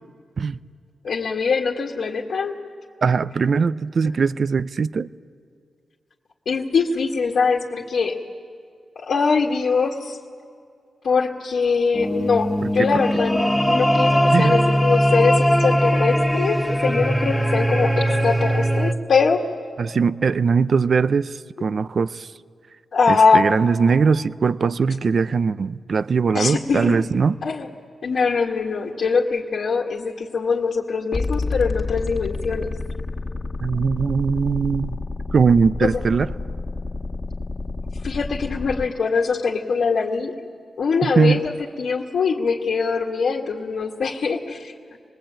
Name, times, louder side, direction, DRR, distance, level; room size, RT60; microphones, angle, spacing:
voice 1, 1.0-2.5 6.5-8.2 9.0-10.2 11.0-19.4 22.9-23.5 26.3-27.0 27.4-27.7 28.0-32.7 35.8-36.0 38.0-40.3 40.8-41.5 41.8-44.7, left 5 dB, 70° left, 2.1 m, -22 dB
voice 2, 3.0-5.1 12.8-13.0 14.3-14.6 19.8-22.3 23.1-27.4 33.6-35.0 35.3-36.3 41.0-41.4, right 5 dB, 55° right, 0.5 m, -20 dB
sound 1, 11.9-18.9, equal, 5° left, 1.1 m, -20 dB
sound 2, 31.1-38.9, left 3 dB, 40° left, 2.2 m, -29 dB
27.5 x 20.5 x 8.9 m
cardioid pair, 80°, 0 cm